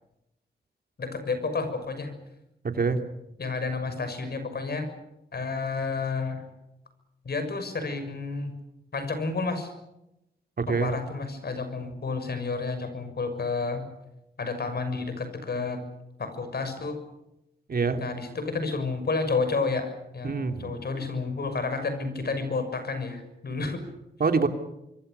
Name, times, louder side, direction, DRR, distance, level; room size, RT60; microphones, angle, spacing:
voice 1, 1.0-2.1 3.4-4.9 5.3-6.5 7.2-8.5 8.9-9.7 10.7-13.9 14.4-15.8 16.2-17.0 18.0-23.8, left 4 dB, 60° left, 9 dB, 6.4 m, -30 dB
voice 2, 10.6-10.9 17.7-18.0 20.2-20.7 24.2-24.5, right 4 dB, 55° right, 6 dB, 3.0 m, -25 dB
27.0 x 23.5 x 6.8 m, 0.87 s
cardioid pair, 65°, 19 cm